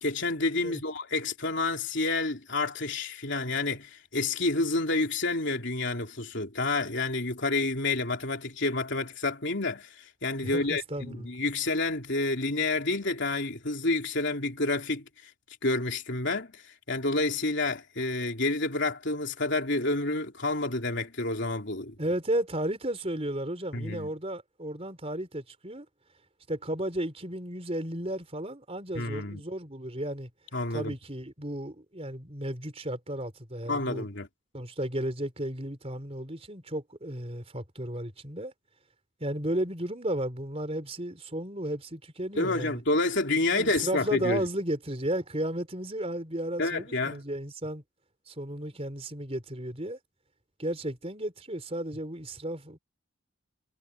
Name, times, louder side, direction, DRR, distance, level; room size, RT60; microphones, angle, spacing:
voice 1, 0.0-15.1 15.6-16.6 16.9-22.0 23.7-24.1 29.0-29.4 30.5-30.9 33.7-34.3 42.4-44.4 46.6-47.2, left 2 dB, 55° left, 3.6 m, -29 dB
voice 2, 10.4-11.3 22.0-25.9 26.5-30.3 30.7-34.1 34.5-38.5 39.2-42.8 43.5-47.8 48.3-50.0 50.6-52.8, right 1 dB, 30° right, 4.5 m, -34 dB
head